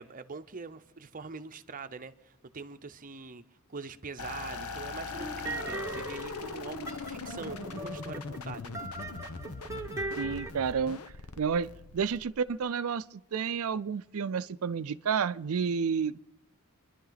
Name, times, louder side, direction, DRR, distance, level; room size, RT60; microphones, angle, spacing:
voice 1, 0.0-3.4 3.7-8.7, right 4 dB, 40° right, 0.7 m, -43 dB
sound 1, 4.2-12.6, left 3 dB, 85° left, 1.0 m, -40 dB
sound 2, 5.1-10.5, right 2 dB, 15° right, 1.1 m, -40 dB
voice 2, 10.2-11.0 11.4-16.2, right 6 dB, 75° right, 0.5 m, -30 dB
28.0 x 11.0 x 4.0 m
head